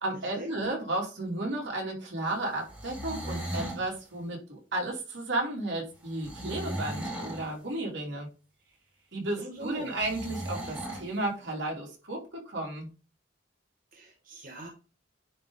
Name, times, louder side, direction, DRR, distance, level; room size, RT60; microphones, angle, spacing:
voice 1, 0.0-8.3 9.1-12.9, right 2 dB, 70° right, -1 dB, 2.8 m, -33 dB
sound 1, 2.6-3.8 6.2-7.5 10.0-11.1, right 1 dB, 10° right, 2.3 m, -36 dB
voice 2, 9.4-9.9 13.9-14.7, right 2 dB, 45° right, 1 dB, 1.2 m, -42 dB
9.9 x 3.6 x 3.9 m, 0.33 s
head